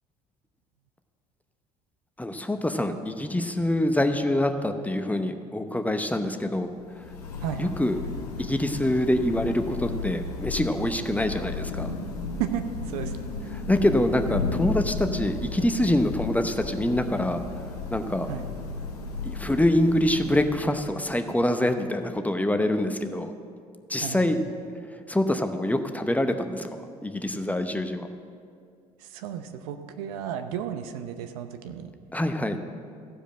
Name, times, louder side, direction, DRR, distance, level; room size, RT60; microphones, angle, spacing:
voice 1, 2.2-7.0 7.6-8.0 8.4-11.9 13.7-17.4 17.9-18.3 19.2-23.3 23.9-24.4 25.1-28.1 32.1-32.6, left 1 dB, 10° left, 7 dB, 0.8 m, -25 dB
Thunder / Rain, 6.7-21.0, left 4 dB, 85° left, 1.0 m, -34 dB
voice 2, 7.4-7.7 12.4-13.2 13.4-13.5 18.3-18.5 24.0-24.5 29.0-31.9, right 9 dB, 70° right, 9 dB, 0.7 m, -33 dB
15.0 x 5.1 x 7.6 m, 2.2 s
hypercardioid pair, 55°, 19 cm